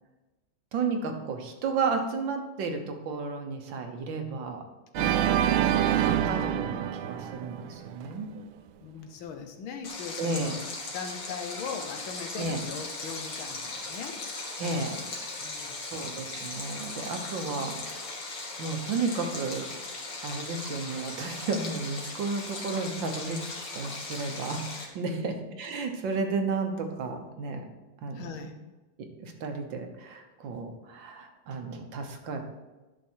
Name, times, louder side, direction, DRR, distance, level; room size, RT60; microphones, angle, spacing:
voice 1, 0.7-4.6 5.3-5.4 5.7-8.3 10.2-10.6 12.4-12.6 14.6-15.0 15.8-17.8 18.6-19.7 20.2-27.6 28.0-28.4 29.2-32.4, right 4 dB, 70° right, 5 dB, 1.8 m, -33 dB
Organ, 4.9-8.1, right 10 dB, 90° right, 1.4 m, -26 dB
voice 2, 5.0-5.3 8.8-14.2 14.6-14.9 15.4-15.8 25.0-25.3 28.1-28.5, left 6 dB, 85° left, 6 dB, 1.8 m, -40 dB
Stream, 9.8-24.9, left 3 dB, 65° left, 2.3 m, -38 dB
10.5 x 6.2 x 4.6 m, 1.1 s
omnidirectional pair, 2.2 m